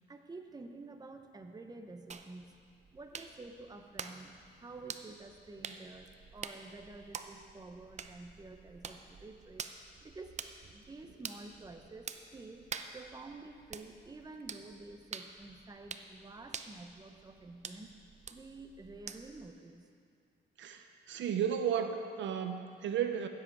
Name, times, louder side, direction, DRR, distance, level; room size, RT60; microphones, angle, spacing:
voice 1, 0.1-2.6 2.9-9.7 10.0-10.4 10.7-12.7 12.9-17.9 18.3-19.8, right 3 dB, 20° right, 5 dB, 0.9 m, -50 dB
sound 1, 2.1-19.5, right 6 dB, 35° right, 0.6 m, -48 dB
voice 2, 20.6-23.3, right 8 dB, 70° right, 7 dB, 0.8 m, -34 dB
15.5 x 7.9 x 4.7 m, 2.4 s
cardioid pair, 90°, 20 cm